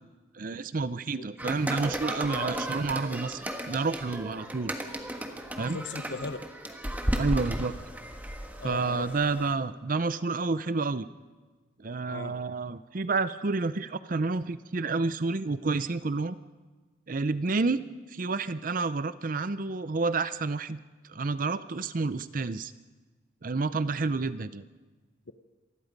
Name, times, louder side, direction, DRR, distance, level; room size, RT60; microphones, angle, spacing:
voice 1, 0.3-4.8 5.6-5.8 7.2-7.8 8.6-11.1 11.8-16.4 17.1-17.8 18.1-20.8 21.1-22.7 23.4-24.6, right 3 dB, 45° right, 14 dB, 0.6 m, -29 dB
sound 1, 1.4-9.5, right 1 dB, 10° right, 1.5 m, -35 dB
voice 2, 5.6-6.4 8.6-9.1 12.1-12.4, left 3 dB, 65° left, 9 dB, 0.9 m, -37 dB
26.5 x 20.0 x 5.3 m, 1.3 s
head